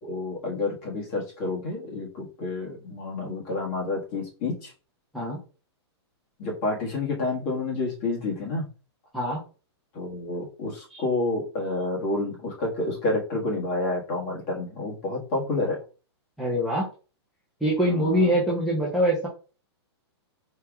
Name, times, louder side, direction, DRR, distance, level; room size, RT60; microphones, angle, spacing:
voice 1, 0.0-4.7 6.4-8.7 9.9-15.8 17.9-18.3, left 2 dB, 30° left, -2 dB, 1.7 m, -29 dB
voice 2, 16.4-16.8 17.6-19.3, right 1 dB, ahead, -6 dB, 0.8 m, -24 dB
4.6 x 2.7 x 3.6 m, 0.34 s
hypercardioid pair, 165°, 14 cm